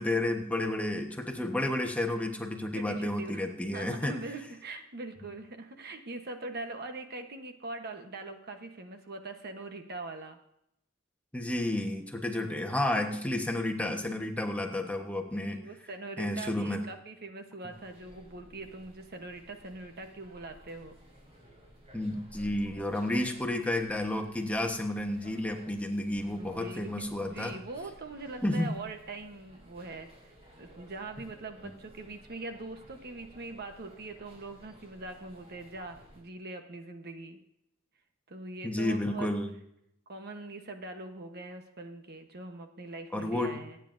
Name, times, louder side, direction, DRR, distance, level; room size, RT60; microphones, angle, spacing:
voice 1, 0.0-4.2 11.3-15.6 16.2-16.8 21.9-27.5 28.4-28.7 38.6-39.5 43.1-43.6, left 1 dB, 5° left, 3 dB, 1.2 m, -31 dB
voice 2, 2.7-3.5 3.7-10.4 15.5-21.0 26.2-37.4 38.3-39.3 40.1-43.8, right 2 dB, 50° right, 6 dB, 1.1 m, -42 dB
sound 1, 17.7-36.2, equal, 30° right, 4.8 m, -55 dB
26.0 x 9.1 x 2.7 m, 0.78 s
head